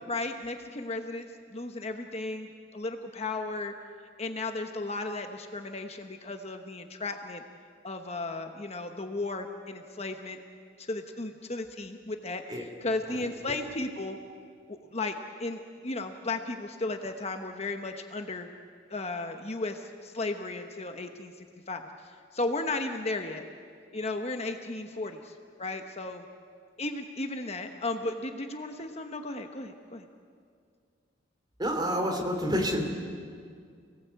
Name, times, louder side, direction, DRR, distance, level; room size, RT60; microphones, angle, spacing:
voice 1, 0.1-3.7 4.2-7.4 7.8-10.4 10.8-14.2 14.7-18.5 18.9-21.9 22.3-23.4 23.9-25.3 25.6-26.3 26.8-30.1, left 2 dB, 35° left, 5 dB, 1.1 m, -35 dB
voice 2, 31.6-32.8, equal, 25° right, 3 dB, 3.3 m, -28 dB
28.5 x 19.0 x 8.3 m, 2.2 s
head